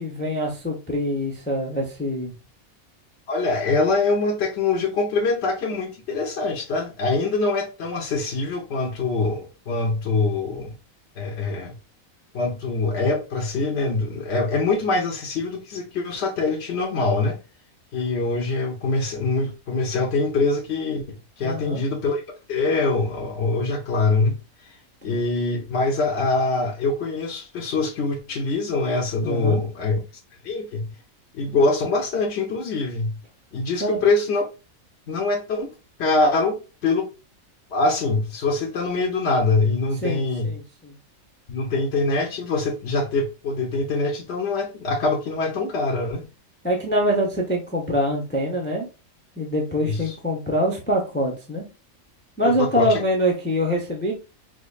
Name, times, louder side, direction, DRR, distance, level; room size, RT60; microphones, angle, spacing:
voice 1, 0.0-2.3 21.4-21.8 25.0-25.1 29.2-29.6 33.8-34.0 40.0-41.0 46.6-48.9 49.4-51.7 52.4-54.1, equal, 10° left, 0.5 m, -24 dB
voice 2, 3.3-10.7 11.2-11.7 12.3-17.4 17.9-22.2 22.5-24.4 24.6-24.8 25.0-30.0 30.4-30.9 31.3-33.2 33.5-34.4 35.1-35.7 36.0-37.1 37.7-40.6 41.5-46.3 49.8-50.1 52.4-53.0, left 3 dB, 60° left, 0.9 m, -24 dB
4.9 x 2.2 x 2.4 m
omnidirectional pair, 1.5 m